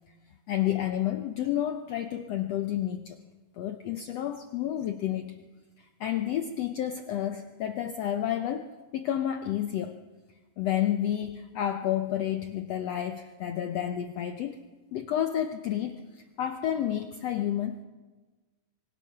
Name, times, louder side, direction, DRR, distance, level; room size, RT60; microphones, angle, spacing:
voice 1, 0.5-3.2 3.6-5.4 5.8-10.0 10.6-14.6 14.9-17.8, left 11 dB, 75° left, 7 dB, 1.5 m, -30 dB
25.5 x 23.5 x 5.8 m, 1.3 s
omnidirectional pair, 3.9 m